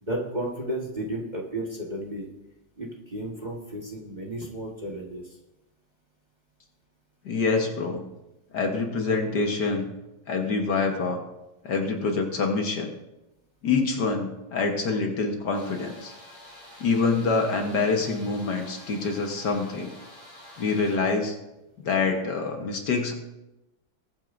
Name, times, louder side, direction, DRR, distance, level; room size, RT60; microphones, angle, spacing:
voice 1, 0.0-2.3 2.8-5.4, right 1 dB, 25° right, -3 dB, 1.4 m, -33 dB
voice 2, 7.2-8.0 8.5-9.9 10.3-11.2 11.6-12.9 13.6-16.1 16.8-19.9 20.6-21.4 21.8-23.1, left 4 dB, 60° left, 3 dB, 1.7 m, -26 dB
sound 1, 15.5-21.0, left 1 dB, 35° left, 3.9 m, -48 dB
20.5 x 8.9 x 2.6 m, 0.95 s
omnidirectional pair, 2.1 m